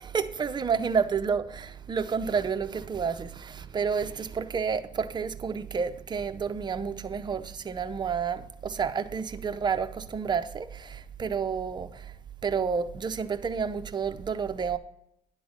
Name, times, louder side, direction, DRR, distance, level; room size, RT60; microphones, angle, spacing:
voice 1, 0.1-12.0 12.4-14.8, right 6 dB, 25° right, 0.6 m, -30 dB
10.5 x 3.9 x 7.1 m
cardioid pair, 110°, 17 cm